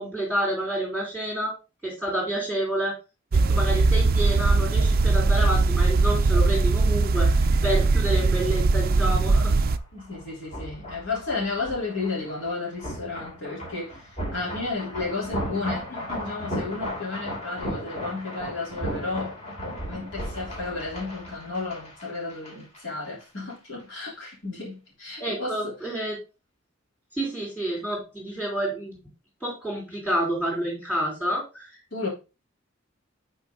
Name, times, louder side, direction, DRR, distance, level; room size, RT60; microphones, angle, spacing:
voice 1, 0.0-1.5 1.8-2.9 3.5-9.5 25.2-26.2 27.1-29.0 29.4-31.8, right 1 dB, 5° left, 3.2 m, -29 dB
sound 1, 3.3-9.8, right 3 dB, 45° right, 0.4 m, -20 dB
sound 2, 9.0-22.8 23.1-23.2, equal, 35° left, 3.0 m, -36 dB
voice 2, 9.9-19.4 19.8-25.9 31.9-32.1, left 3 dB, 60° left, 3.3 m, -33 dB
8.1 x 4.4 x 3.7 m
head